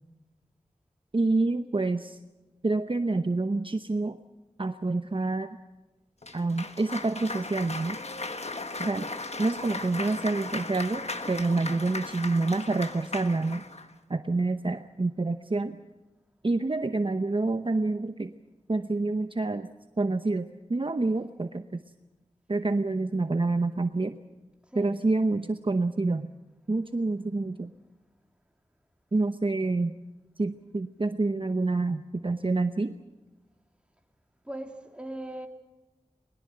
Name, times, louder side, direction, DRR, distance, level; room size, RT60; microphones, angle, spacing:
voice 1, 1.1-2.2 2.6-4.2 4.6-5.6 6.3-8.0 8.8-9.1 9.4-13.7 14.1-15.8 16.4-18.3 18.7-19.7 20.0-21.8 22.5-24.2 24.8-26.3 26.7-27.7 29.1-29.9 30.4-32.9, right 3 dB, 40° right, 8 dB, 0.8 m, -27 dB
Cheering / Applause, 6.2-13.9, left 3 dB, 55° left, 1.4 m, -37 dB
voice 2, 34.4-35.5, right 1 dB, 10° right, 3 dB, 2.8 m, -39 dB
21.5 x 20.0 x 7.8 m, 1.1 s
wide cardioid pair, 55°, 13 cm